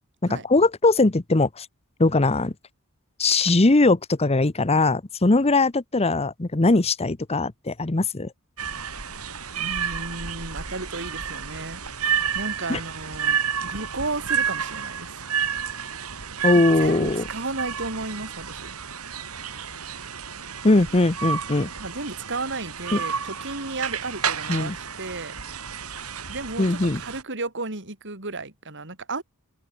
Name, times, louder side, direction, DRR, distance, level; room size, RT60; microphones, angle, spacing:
voice 1, 0.3-1.7 2.0-2.5 3.2-8.3 12.7-12.8 16.4-17.2 20.6-21.7 22.9-23.0 24.5-24.8 26.6-27.0, left 2 dB, 30° left, 0.9 m, -20 dB
sound 1, 8.6-27.2, right 7 dB, 90° right, 4.9 m, -31 dB
voice 2, 9.6-15.2 16.5-18.7 21.8-25.3 26.3-29.2, right 3 dB, 55° right, 4.6 m, -34 dB
open air
head